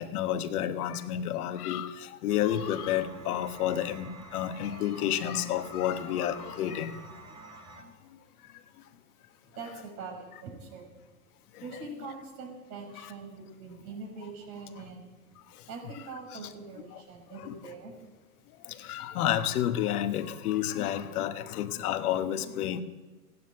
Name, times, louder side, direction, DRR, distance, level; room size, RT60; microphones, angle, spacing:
voice 1, 0.0-1.9 2.2-6.9 17.5-17.6 18.9-22.8, left 11 dB, 65° left, 9 dB, 1.2 m, -30 dB
sound 1, 2.3-7.8, right 3 dB, 10° right, 3.5 m, -48 dB
voice 2, 9.5-10.9 11.6-15.1 15.7-18.0, right 3 dB, 60° right, 2 dB, 6.2 m, -43 dB
16.0 x 9.7 x 8.8 m, 1.2 s
hypercardioid pair, 120°, 48 cm